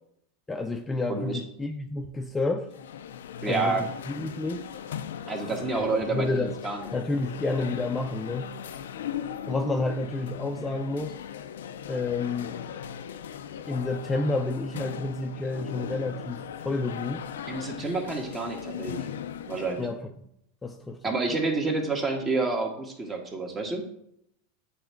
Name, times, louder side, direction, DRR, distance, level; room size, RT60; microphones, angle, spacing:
voice 1, 0.5-2.7 3.5-4.6 5.5-6.5 6.9-8.5 9.5-11.1 11.9-12.5 13.7-17.2 19.8-20.1 20.6-21.0, left 3 dB, 15° left, 4 dB, 0.5 m, -30 dB
voice 2, 1.1-1.4 3.4-3.8 5.3-6.9 17.5-19.1 19.5-19.9 21.0-23.8, right 3 dB, 25° right, 3 dB, 1.5 m, -29 dB
sound 1, 2.6-20.0, left 8 dB, 85° left, 0.4 m, -38 dB
7.8 x 3.5 x 4.5 m, 0.74 s
hypercardioid pair, 110°, 0 cm